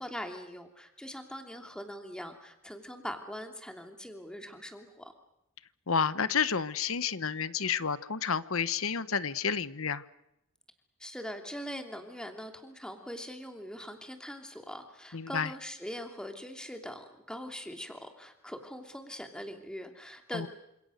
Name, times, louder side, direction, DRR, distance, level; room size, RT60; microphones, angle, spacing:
voice 1, 0.0-5.1 11.0-20.5, equal, 5° left, 4 dB, 3.0 m, -42 dB
voice 2, 5.9-10.0 15.1-15.5 20.3-20.5, left 6 dB, 65° left, 14 dB, 1.0 m, -30 dB
28.5 x 27.5 x 6.6 m, 0.85 s
head